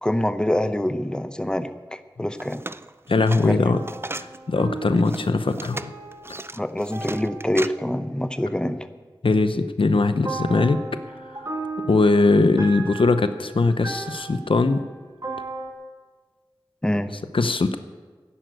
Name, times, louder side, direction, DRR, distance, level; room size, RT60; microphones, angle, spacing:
voice 1, 0.0-2.6 3.4-3.8 6.5-8.8 16.8-17.1, left 1 dB, 10° left, 10 dB, 0.8 m, -25 dB
sound 1, 2.3-4.4 4.9-7.7, right 2 dB, 25° right, 0.4 m, -36 dB
voice 2, 3.1-3.8 4.2-5.9 9.2-10.8 11.9-14.8 17.3-17.8, left 3 dB, 80° left, 10 dB, 0.7 m, -20 dB
sound 2, 3.6-9.0 10.3-15.7, right 3 dB, 45° right, 2.4 m, -36 dB
11.5 x 10.5 x 8.1 m, 1.4 s
wide cardioid pair, 50°, 9 cm